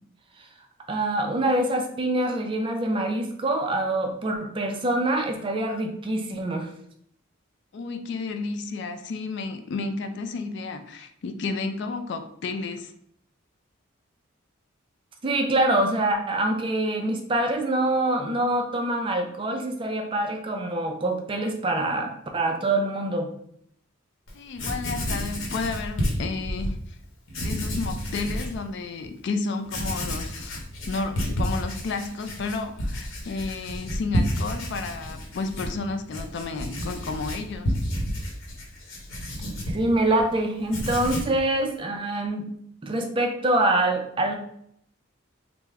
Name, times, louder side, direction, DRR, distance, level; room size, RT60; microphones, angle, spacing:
voice 1, 0.9-6.7 15.2-23.3 39.7-42.5 42.8-44.3, right 1 dB, 25° right, 3 dB, 0.3 m, -25 dB
voice 2, 7.7-12.9 24.3-27.0 27.4-37.7, left 3 dB, 55° left, 7 dB, 0.3 m, -32 dB
Writing, 24.3-24.4 24.6-26.7 27.3-28.6 29.0-29.1 29.6-40.3 40.6-41.4, equal, 75° left, 0.8 m, -31 dB
3.4 x 2.0 x 3.3 m, 0.69 s
head